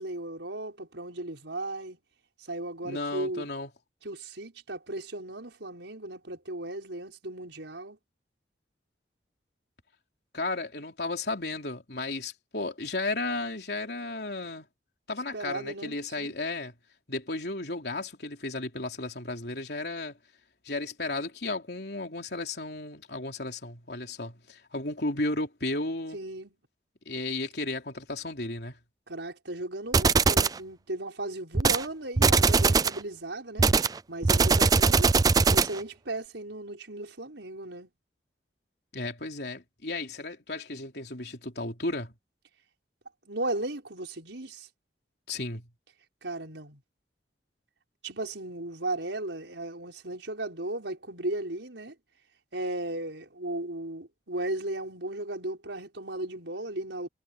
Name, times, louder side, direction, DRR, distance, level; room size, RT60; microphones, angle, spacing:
voice 1, 0.0-2.0 2.4-3.5 4.0-8.0 15.3-16.3 26.1-26.6 29.1-33.7 34.1-35.2 35.5-37.9 43.3-44.7 46.2-46.8 48.0-51.9 52.5-57.1, right 2 dB, 85° right, 5.5 m, -36 dB
voice 2, 2.8-3.7 10.3-14.7 15.1-16.7 17.1-20.2 20.6-26.2 27.1-28.8 38.9-42.1 45.3-45.7, left 2 dB, 65° left, 3.6 m, -34 dB
sound 1, 29.9-30.6 31.5-31.8 32.2-33.0 33.6-35.8, right 4 dB, 20° right, 0.3 m, -21 dB
head